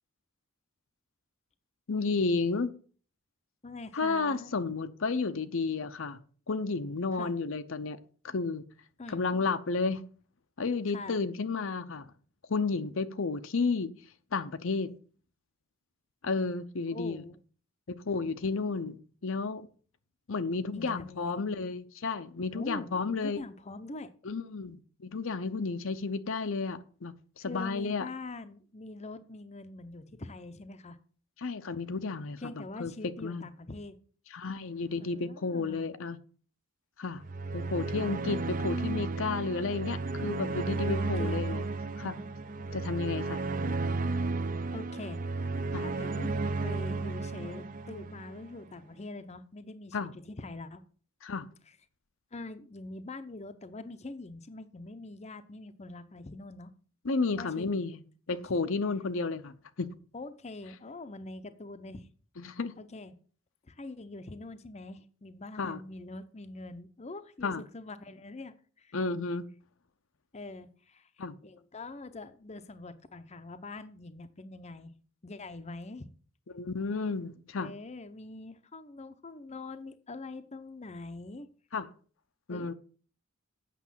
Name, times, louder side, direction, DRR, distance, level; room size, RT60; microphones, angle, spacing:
voice 1, 1.9-2.7 3.9-6.2 6.5-8.0 8.2-8.6 9.1-10.0 10.6-12.1 12.5-13.9 14.3-14.9 16.2-17.2 17.9-19.7 20.3-23.4 24.2-28.1 31.4-32.9 33.2-33.5 34.3-36.2 37.0-37.2 37.5-41.6 42.0-42.2 42.7-43.4 45.7-45.8 49.9-50.1 51.2-51.5 57.0-58.0 58.3-59.9 62.4-62.7 65.6-65.8 67.4-67.6 68.9-69.5 71.2-71.4 76.5-77.7 81.7-81.9 82.5-82.7, left 4 dB, 65° left, 0.7 m, -32 dB
voice 2, 3.6-4.5 7.1-7.3 9.0-9.2 10.9-11.2 16.9-17.4 20.7-21.4 22.5-24.1 27.5-31.0 32.4-34.0 35.0-35.9 41.0-41.5 44.7-45.2 45.7-50.8 51.7-51.8 52.3-56.7 57.4-57.7 58.3-58.7 60.1-62.1 62.8-63.2 63.6-69.0 70.3-74.9 75.2-76.1 77.6-81.5 82.5-82.7, left 2 dB, 30° left, 0.7 m, -44 dB
sound 1, 37.2-48.5, right 3 dB, 40° right, 0.6 m, -33 dB
8.4 x 6.5 x 7.4 m
head